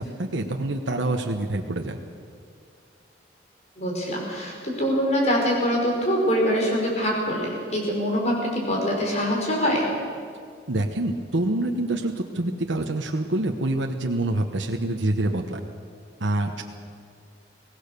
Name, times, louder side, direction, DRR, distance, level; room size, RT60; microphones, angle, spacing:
voice 1, 0.0-2.0 10.7-15.6 16.2-16.6, right 1 dB, 80° right, 2 dB, 1.2 m, -26 dB
voice 2, 3.8-9.9, equal, 35° left, -1 dB, 5.5 m, -24 dB
23.5 x 18.0 x 6.8 m, 2.2 s
head